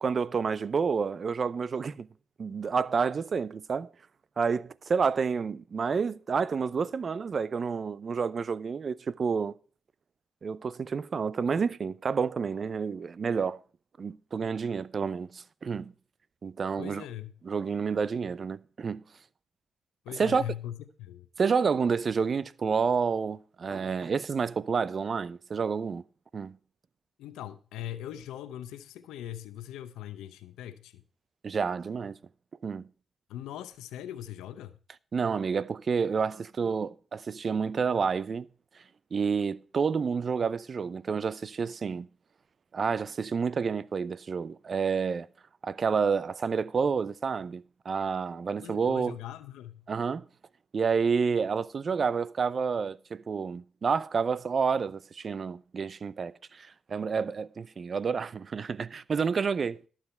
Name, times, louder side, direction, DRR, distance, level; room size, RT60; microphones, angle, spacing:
voice 1, 0.0-2.1 2.4-3.9 4.4-9.5 10.4-13.6 14.0-15.9 16.4-17.0 17.4-19.0 20.2-20.4 21.4-26.0 26.3-26.6 31.4-32.2 32.6-32.9 35.1-38.5 39.1-42.1 42.7-45.3 45.6-49.2 49.9-50.3 50.7-59.8, right 5 dB, 55° right, 0.6 m, -29 dB
voice 2, 16.8-17.3 20.0-21.3 27.2-31.0 33.3-34.7 48.6-49.8, left 11 dB, 90° left, 0.7 m, -40 dB
12.0 x 7.4 x 4.3 m
supercardioid pair, 50°, 0 cm